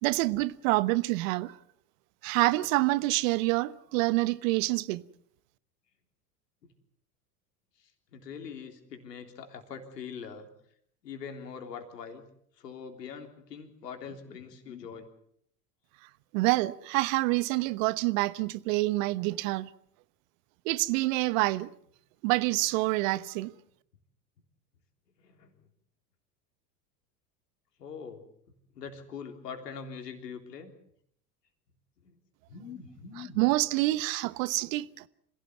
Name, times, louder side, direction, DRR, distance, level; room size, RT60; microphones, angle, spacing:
voice 1, 0.0-1.6 2.2-5.0 16.3-19.7 20.6-21.7 22.2-23.5 33.4-35.0, right 20 dB, 55° right, 1.1 m, -27 dB
voice 2, 7.8-10.5 11.0-12.2 12.6-15.1 25.2-25.5 27.8-28.2 28.8-30.7 32.0-32.1 32.5-33.4, left 6 dB, 75° left, 3.5 m, -43 dB
26.5 x 17.0 x 7.8 m
figure-of-eight pair, 80°, 49 cm